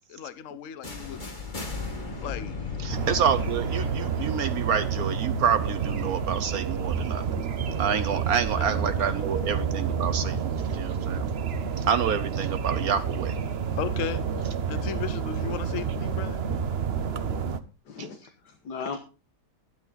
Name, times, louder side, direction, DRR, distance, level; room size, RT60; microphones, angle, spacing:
voice 1, 0.1-1.2 2.2-2.6 8.6-8.8 9.3-9.4 13.8-14.2 14.7-16.4, left 9 dB, 55° left, 1.2 m, -35 dB
sound 1, 0.8-6.7, left 4 dB, 30° left, 2.0 m, -37 dB
voice 2, 2.8-7.3 7.8-11.3 11.8-13.3 16.5-16.6 18.0-18.1, right 7 dB, 65° right, 1.2 m, -28 dB
sound 2, 2.9-17.6, right 6 dB, 45° right, 0.9 m, -29 dB
voice 3, 17.9-19.0, left 5 dB, 80° left, 2.0 m, -37 dB
12.5 x 11.5 x 4.1 m
omnidirectional pair, 1.8 m